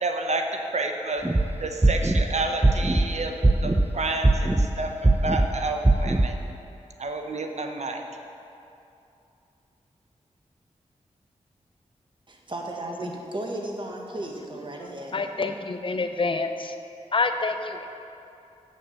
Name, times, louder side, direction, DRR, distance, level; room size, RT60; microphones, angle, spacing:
voice 1, 0.0-1.3 1.6-6.3 7.0-8.0, right 2 dB, 60° right, 4 dB, 0.9 m, -30 dB
sound 1, 1.2-1.4 1.8-2.2 2.6-3.0 3.4-3.9 4.2-4.7 5.0-5.5 5.8-6.3, right 2 dB, 15° right, 0.6 m, -19 dB
voice 2, 12.3-15.2, right 1 dB, 40° right, 0 dB, 1.5 m, -35 dB
voice 3, 15.1-16.7 17.1-17.9, left 3 dB, 40° left, 7 dB, 0.7 m, -27 dB
7.7 x 6.6 x 6.8 m, 2.7 s
cardioid pair, 50°, 13 cm